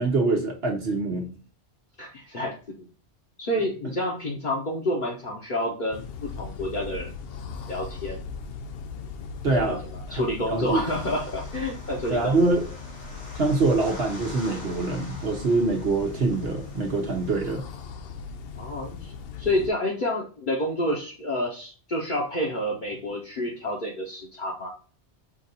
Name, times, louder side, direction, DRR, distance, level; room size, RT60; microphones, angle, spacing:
voice 1, 0.0-1.3 9.4-9.8 10.1-10.2 10.5-10.8 12.1-12.7 13.4-17.6, right 3 dB, 65° right, 0 dB, 1.2 m, -24 dB
voice 2, 2.0-2.5 3.4-7.1 7.7-8.2 9.6-12.4 18.6-19.1 19.4-24.7, left 1 dB, 45° left, -3 dB, 1.1 m, -29 dB
sound 1, 5.9-19.7, left 5 dB, 65° left, 0.7 m, -39 dB
sound 2, 10.8-17.3, equal, 90° left, 1.9 m, -45 dB
5.1 x 2.6 x 4.0 m, 0.38 s
omnidirectional pair, 1.2 m